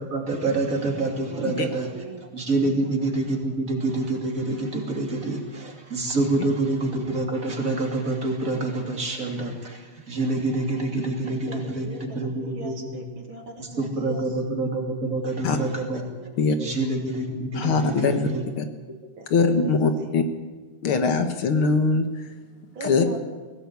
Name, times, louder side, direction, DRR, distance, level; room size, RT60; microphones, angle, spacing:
voice 1, 0.0-1.9 2.3-13.0 13.6-16.0 16.6-18.4, right 2 dB, 40° right, 2 dB, 3.3 m, -27 dB
voice 2, 1.7-2.3 2.6-2.9 11.5-14.2 15.1-15.4 16.1-16.3 18.0-18.5 19.2-19.3 20.0-20.1 22.7-23.2, right 3 dB, 70° right, 4 dB, 2.8 m, -39 dB
voice 3, 17.5-18.3 18.5-18.7 19.3-20.2 20.8-22.4 22.8-23.1, left 4 dB, 75° left, 7 dB, 2.3 m, -22 dB
20.0 x 17.0 x 8.4 m, 1.3 s
omnidirectional pair, 2.3 m